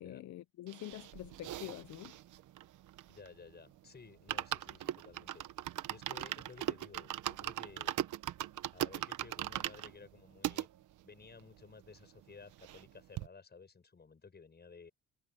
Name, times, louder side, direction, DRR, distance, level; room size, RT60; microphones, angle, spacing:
voice 1, 0.0-2.2, left 14 dB, 70° left, 0.7 m, -46 dB
sound 1, 0.7-3.5 3.8-3.9 4.1-10.7 11.2-11.3 11.5-11.6 11.9-12.9 13.2-13.3, right 13 dB, 80° right, 1.2 m, -39 dB
voice 2, 3.1-5.4 5.9-7.9 8.7-10.7 11.0-14.9, left 5 dB, 35° left, 7.4 m, -55 dB
cardioid pair, 90°, 30 cm